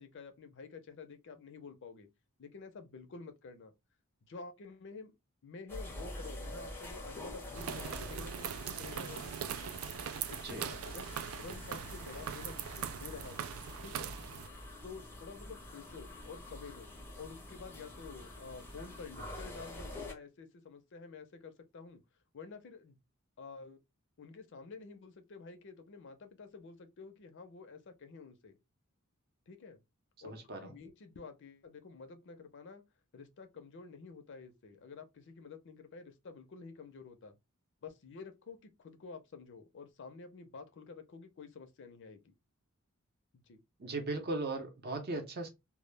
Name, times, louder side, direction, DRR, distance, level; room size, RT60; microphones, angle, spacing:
voice 1, 0.0-2.1 2.4-3.7 4.2-5.1 5.4-9.4 10.3-11.1 11.4-13.5 13.8-14.1 14.8-16.9 17.2-22.0 22.3-23.0 23.4-23.8 24.2-28.5 29.5-29.8 30.2-30.3 30.6-32.8 33.1-37.4 37.8-42.3 43.3-43.6, left 4 dB, 55° left, 0.5 m, -50 dB
sound 1, 5.7-20.1, left 1 dB, 10° left, 0.5 m, -47 dB
sound 2, 7.5-14.5, right 9 dB, 70° right, 0.3 m, -41 dB
voice 2, 30.2-30.8 43.8-45.5, right 2 dB, 50° right, 0.7 m, -38 dB
2.2 x 2.0 x 3.1 m
head